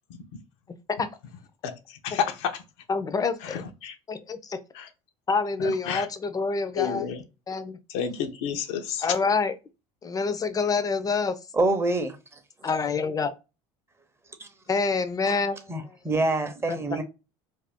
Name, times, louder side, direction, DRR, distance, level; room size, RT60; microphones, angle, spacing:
voice 1, 0.1-0.4 1.6-2.6 3.4-3.9 4.7-4.9 5.6-6.1 6.8-7.2 7.9-9.1, left 7 dB, 75° left, 0.6 m, -31 dB
voice 2, 2.9-3.7 4.1-4.6 5.3-7.1 7.5-7.8 9.0-9.5 10.0-11.4 12.6-13.3 14.7-16.0 16.7-16.8, left 4 dB, 25° left, 0.5 m, -27 dB
voice 3, 11.5-12.2 14.4-14.5 15.3-15.4 15.7-17.0, right 2 dB, 15° right, 0.6 m, -26 dB
2.5 x 2.2 x 3.5 m
hypercardioid pair, 85°, 15 cm